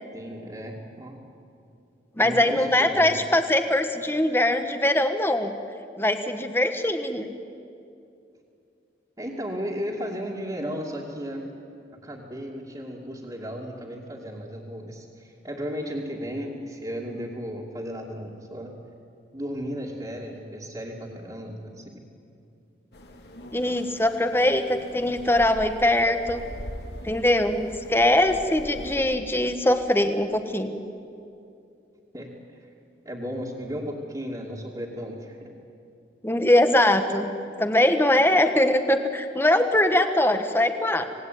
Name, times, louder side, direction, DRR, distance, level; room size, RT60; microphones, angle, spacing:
voice 1, 0.1-1.2 2.2-3.2 9.2-11.5 12.0-18.7 19.3-22.0 32.1-32.6 33.0-35.5, equal, 25° right, -5 dB, 2.6 m, -35 dB
voice 2, 2.2-5.5 6.0-7.3 23.5-26.4 27.0-30.8 36.2-37.3 37.6-41.0, left 1 dB, 15° left, 7 dB, 1.3 m, -22 dB
sound 1, 22.9-29.0, equal, 65° left, 2.5 m, -41 dB
26.5 x 19.0 x 9.4 m, 2.6 s
head